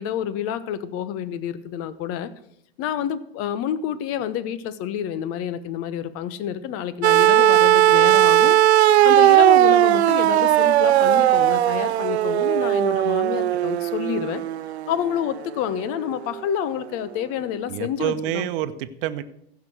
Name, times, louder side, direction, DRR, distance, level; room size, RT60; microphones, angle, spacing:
voice 1, 0.0-2.3 2.8-8.6 9.0-14.4 14.9-18.5, left 9 dB, 45° left, 15 dB, 1.1 m, -28 dB
sound 1, 7.0-15.2 16.4-16.5, right 12 dB, 90° right, 0.5 m, -17 dB
voice 2, 17.7-19.2, right 12 dB, 60° right, 11 dB, 1.0 m, -27 dB
15.0 x 6.0 x 6.3 m, 0.74 s
hypercardioid pair, 110°, 32 cm